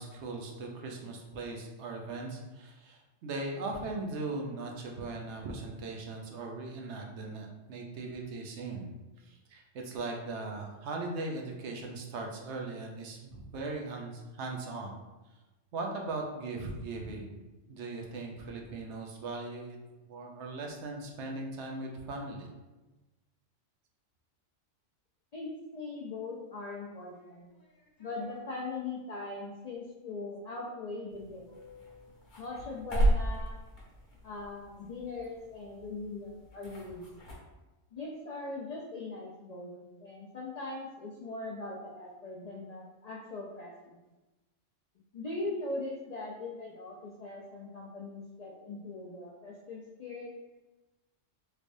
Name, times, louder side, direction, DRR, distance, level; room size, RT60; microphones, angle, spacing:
voice 1, 0.0-8.9 9.2-15.0 15.7-17.4 17.7-19.8 20.0-22.5, right 3 dB, 70° right, 1 dB, 0.9 m, -39 dB
voice 2, 25.3-27.4 28.0-31.5 32.4-33.6 34.2-37.0 37.9-44.0 45.1-50.3, left 3 dB, 85° left, -3 dB, 0.3 m, -40 dB
sound 1, 27.1-28.4 30.6-32.2, left 4 dB, 20° left, 0.7 m, -57 dB
sound 2, 31.1-37.4, right 1 dB, 45° left, 1.0 m, -34 dB
3.2 x 3.2 x 2.5 m, 1.1 s
omnidirectional pair, 1.3 m